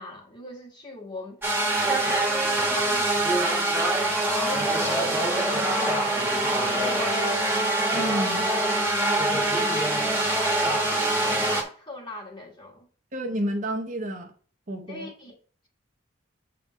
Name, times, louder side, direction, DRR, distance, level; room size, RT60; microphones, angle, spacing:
voice 1, 0.0-3.6 4.2-7.3 9.3-12.9 14.9-15.3, left 1 dB, 20° left, 1.6 m, -40 dB
sound 1, 1.4-11.6, right 1 dB, 10° right, 1.2 m, -24 dB
voice 2, 7.9-8.5 13.1-14.3 14.7-15.1, equal, 35° right, 0.7 m, -30 dB
7.6 x 3.6 x 5.0 m
head